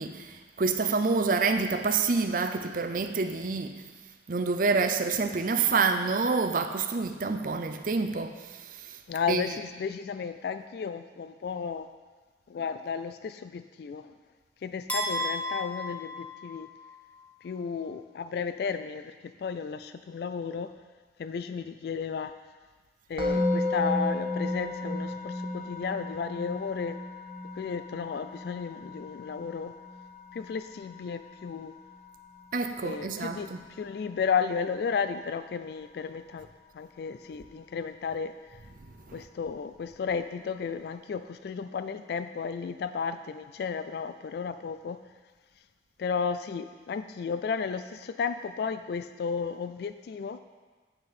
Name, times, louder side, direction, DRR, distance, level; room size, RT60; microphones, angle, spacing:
voice 1, 0.0-3.8 4.3-8.3 9.3-9.6 32.5-33.6 39.1-39.2, right 4 dB, 50° right, 7 dB, 0.5 m, -27 dB
voice 2, 9.1-11.9 12.5-14.1 14.6-16.7 17.4-19.1 19.4-20.7 21.2-22.3 23.1-27.0 27.6-29.7 30.3-31.7 32.8-33.5 33.8-36.5 36.7-38.3 39.1-45.0 46.0-50.4, left 6 dB, 60° left, 11 dB, 0.3 m, -33 dB
sound 1, 14.9-17.0, left 1 dB, 10° left, 1.1 m, -33 dB
Musical instrument, 23.2-34.3, left 2 dB, 30° right, 1.1 m, -34 dB
8.8 x 6.5 x 4.2 m, 1.4 s
head